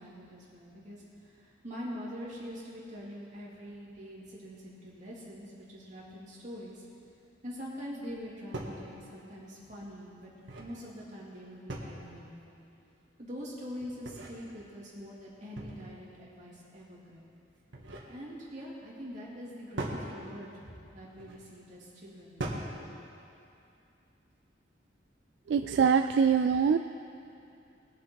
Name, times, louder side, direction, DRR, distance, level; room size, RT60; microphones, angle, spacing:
voice 1, 0.0-6.8 7.4-10.3 10.6-12.6 13.2-17.2 18.1-22.7, equal, 40° right, -6 dB, 2.9 m, -44 dB
sound 1, 8.1-8.2 8.5-8.8 10.2-10.8 11.7-12.2 13.8-14.3 15.6-16.0 17.5-18.1 19.8-20.0 21.1-21.4 22.4-22.8, right 1 dB, 80° right, 1.7 m, -39 dB
voice 2, 25.5-26.8, right 6 dB, 65° right, 9 dB, 0.3 m, -24 dB
20.5 x 7.2 x 4.6 m, 2.6 s
head